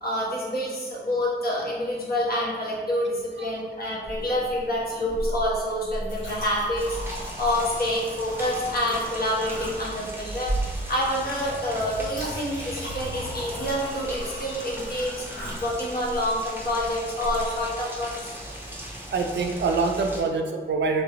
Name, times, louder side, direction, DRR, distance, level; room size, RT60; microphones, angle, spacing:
voice 1, 0.0-7.0 7.4-15.2 15.6-18.3, left 1 dB, 55° left, -4 dB, 0.9 m, -27 dB
Chink clink, 4.0-17.6, right 1 dB, 85° left, 1.3 m, -36 dB
Rain, 6.8-20.2, equal, 10° right, 0.7 m, -39 dB
voice 2, 19.1-21.0, right 4 dB, 70° right, 4 dB, 0.4 m, -25 dB
3.0 x 3.0 x 2.8 m, 1.5 s
wide cardioid pair, 80°, 19 cm